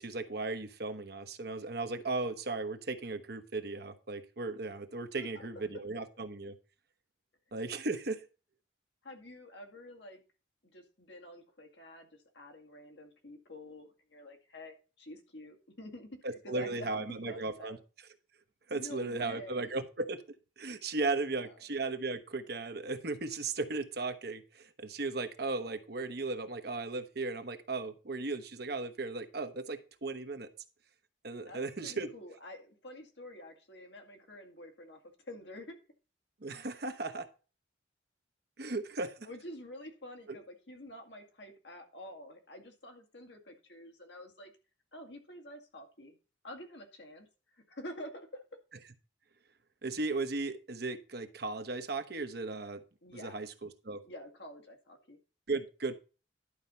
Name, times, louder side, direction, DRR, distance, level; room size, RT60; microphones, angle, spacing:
voice 1, 0.0-6.6 7.5-8.2 16.2-17.8 18.7-20.2 20.6-30.5 31.2-32.1 36.4-37.3 38.6-39.1 49.8-52.8 53.1-54.0 55.5-55.9, right 3 dB, 55° right, 9 dB, 1.0 m, -36 dB
voice 2, 5.1-5.7 9.0-10.2 10.7-16.2 16.4-17.8 18.7-19.7 21.4-21.6 31.4-35.8 39.2-44.5 44.9-46.2 46.4-48.4 53.0-53.4 54.0-55.2, left 1 dB, 65° left, 4 dB, 2.1 m, -48 dB
11.5 x 4.4 x 5.5 m, 0.34 s
head